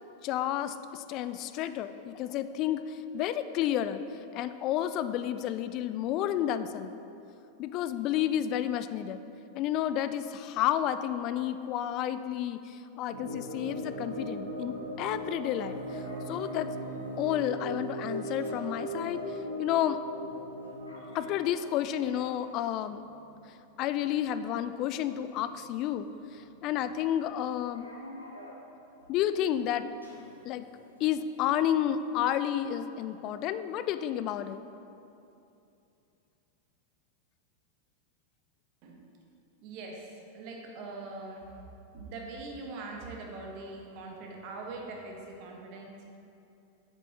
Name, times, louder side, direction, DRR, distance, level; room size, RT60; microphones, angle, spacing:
voice 1, 0.2-4.0 4.3-6.9 7.6-9.2 9.5-16.7 17.2-20.0 21.1-23.1 23.8-27.9 29.1-29.9 30.4-30.7 31.0-34.6, left 11 dB, 40° left, 12 dB, 0.3 m, -31 dB
sound 1, 13.1-21.3, equal, 75° right, 1.2 m, -38 dB
sound 2, 15.4-32.9, equal, 85° left, 1.2 m, -54 dB
voice 2, 39.6-41.5 41.9-46.2, right 3 dB, 45° right, 1 dB, 1.3 m, -42 dB
8.2 x 6.9 x 4.2 m, 2.8 s
figure-of-eight pair, 90°, 0 cm